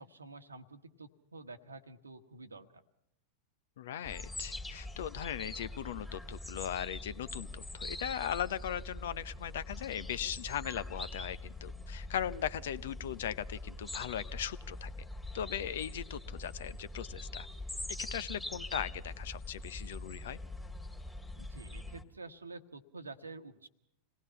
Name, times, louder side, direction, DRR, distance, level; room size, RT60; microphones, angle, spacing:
voice 1, 0.0-2.8 21.4-23.7, right 3 dB, 75° right, 10 dB, 1.3 m, -49 dB
voice 2, 3.8-14.9 15.3-17.5 17.9-20.4, left 10 dB, 60° left, 16 dB, 0.8 m, -38 dB
sound 1, 4.0-22.0, left 2 dB, 5° left, 2.0 m, -43 dB
27.0 x 19.0 x 5.6 m, 0.80 s
figure-of-eight pair, 90°, 0 cm